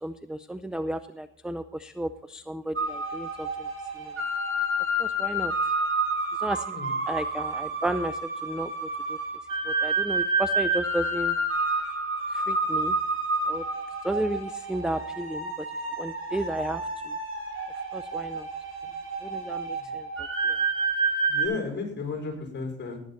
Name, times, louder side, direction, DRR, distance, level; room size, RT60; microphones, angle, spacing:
voice 1, 0.0-3.7 4.0-4.1 5.0-5.5 6.4-6.8 7.1-9.2 9.7-11.3 12.3-13.0 13.5-13.6 14.0-15.7 16.0-16.8 17.1-17.2 17.9-18.5 19.2-20.1 20.4-20.6, right 1 dB, 5° right, 12 dB, 0.4 m, -33 dB
sound 1, 2.8-21.5, right 2 dB, 45° right, 6.7 m, -29 dB
voice 2, 21.3-23.0, left 4 dB, 35° left, 3 dB, 5.2 m, -33 dB
17.0 x 8.9 x 4.3 m, 0.68 s
cardioid pair, 90°, 30 cm